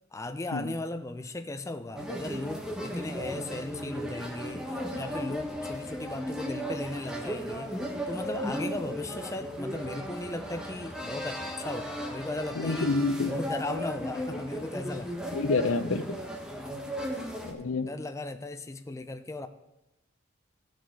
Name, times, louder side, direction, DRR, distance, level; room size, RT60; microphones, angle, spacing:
voice 1, 0.1-7.7 8.1-12.9 13.3-15.4 17.1-17.2 17.6-19.5, left 2 dB, 15° left, 8 dB, 0.5 m, -37 dB
sound 1, 2.0-17.5, equal, 5° right, 1.3 m, -36 dB
voice 2, 12.5-13.3 15.3-16.2 17.4-17.9, left 3 dB, 80° left, 12 dB, 0.7 m, -28 dB
15.0 x 6.5 x 4.7 m, 0.98 s
head